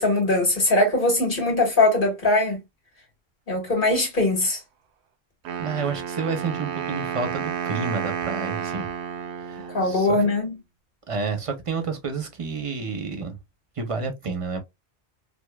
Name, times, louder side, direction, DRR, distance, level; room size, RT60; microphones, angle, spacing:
voice 1, 0.0-2.6 3.5-4.6 9.7-10.5, left 2 dB, 50° left, 1.7 m, -21 dB
Wind instrument woodwind instrument, 5.4-10.4, right 7 dB, 85° right, 0.9 m, -31 dB
voice 2, 5.6-8.9 9.4-10.1 11.1-13.4 13.8-14.6, right 4 dB, 35° right, 0.7 m, -30 dB
4.8 x 2.0 x 2.2 m
omnidirectional pair, 1.1 m